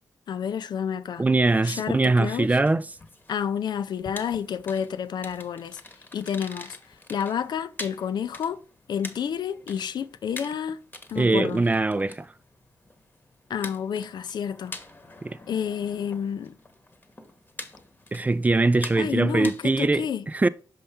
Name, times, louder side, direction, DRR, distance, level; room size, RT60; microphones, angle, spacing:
voice 1, 0.3-1.2 1.6-2.6 3.3-5.8 6.1-6.8 7.1-8.6 8.9-10.8 11.1-11.6 13.5-14.8 15.5-16.6 19.0-20.3, left 8 dB, 75° left, 0.4 m, -30 dB
voice 2, 1.2-2.9 11.2-12.3 15.2-15.4 18.1-20.5, right 2 dB, 20° right, 0.3 m, -22 dB
sound 1, 1.9-20.0, left 2 dB, 25° left, 1.0 m, -45 dB
5.6 x 5.3 x 3.5 m
cardioid pair, 75°, 7 cm